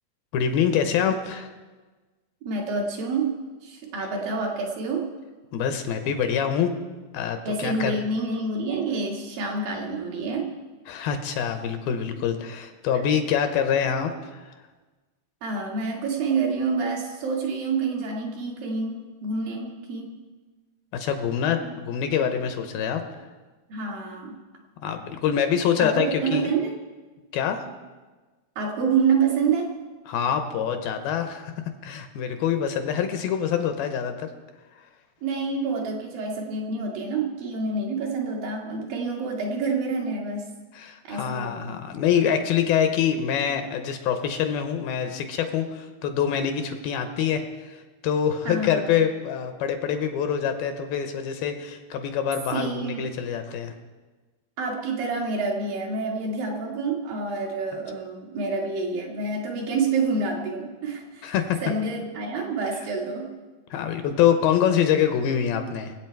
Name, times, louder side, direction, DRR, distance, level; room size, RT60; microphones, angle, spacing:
voice 1, 0.3-1.5 4.0-4.1 5.5-6.7 7.1-8.0 10.9-14.5 20.9-23.2 24.8-26.5 27.3-27.7 30.1-31.5 31.8-34.3 34.8-34.9 40.7-53.8 61.2-61.6 63.7-65.9, left 8 dB, 75° left, 7 dB, 2.5 m, -25 dB
voice 2, 2.4-5.1 7.4-10.5 15.4-20.1 23.7-24.4 25.8-26.7 28.6-29.8 35.2-40.5 41.0-41.8 48.4-48.8 52.5-53.2 54.6-61.3 61.6-63.3, right 4 dB, 65° right, -1 dB, 3.2 m, -28 dB
24.5 x 8.4 x 4.5 m, 1.3 s
omnidirectional pair, 4.6 m